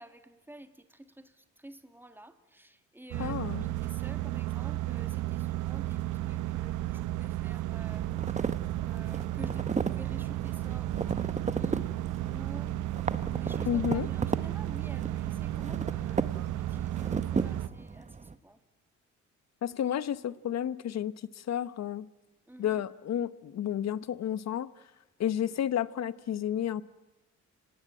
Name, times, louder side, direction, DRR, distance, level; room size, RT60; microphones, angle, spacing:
voice 1, 0.0-8.4 8.8-12.7 13.2-18.6 22.5-22.8, right 1 dB, 5° right, 9 dB, 2.3 m, -50 dB
sound 1, 3.1-17.7, right 15 dB, 80° right, 1.0 m, -33 dB
voice 2, 3.2-3.7 13.7-14.1 19.6-22.1 22.6-24.7 25.2-26.8, left 10 dB, 60° left, 17 dB, 1.1 m, -31 dB
sound 2, 7.9-18.3, right 4 dB, 25° right, 1.1 m, -36 dB
29.5 x 17.5 x 9.1 m, 1.1 s
cardioid pair, 90°, 30 cm